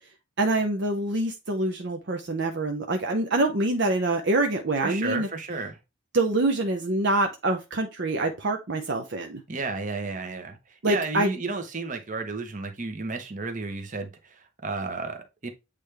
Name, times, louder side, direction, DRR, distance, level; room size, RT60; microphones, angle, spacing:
voice 1, 0.4-5.3 6.1-9.4 10.8-11.3, right 2 dB, 55° right, 0.7 m, -25 dB
voice 2, 4.8-5.8 9.5-15.5, right 3 dB, 35° right, 1.0 m, -32 dB
8.3 x 3.3 x 3.4 m
head